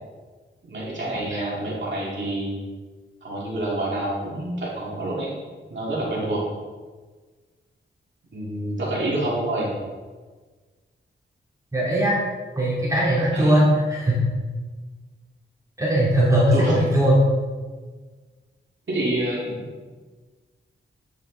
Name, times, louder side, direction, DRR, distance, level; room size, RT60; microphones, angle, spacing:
voice 1, 0.7-2.6 3.2-5.3 5.7-6.4 8.3-9.7 13.3-13.6 16.5-16.7 18.9-19.7, right 1 dB, 65° right, -6 dB, 2.3 m, -27 dB
voice 2, 11.7-12.2 12.6-14.2 15.8-17.2, equal, 15° right, -7 dB, 2.8 m, -19 dB
9.0 x 6.3 x 3.9 m, 1.4 s
wide cardioid pair, 105°, 21 cm